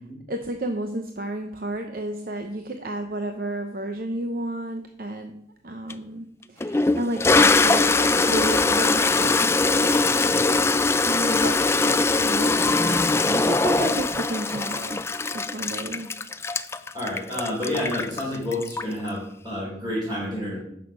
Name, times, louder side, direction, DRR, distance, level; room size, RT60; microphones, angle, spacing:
voice 1, 0.3-5.3 5.6-10.7 11.0-15.0 15.3-16.1, right 1 dB, 55° right, 5 dB, 0.7 m, -32 dB
Toilet flush, 5.9-6.0 6.6-19.1, left 3 dB, 15° left, 0.3 m, -21 dB
voice 2, 16.9-20.6, left 1 dB, 20° right, -11 dB, 4.5 m, -29 dB
10.0 x 6.6 x 5.3 m, 0.74 s
head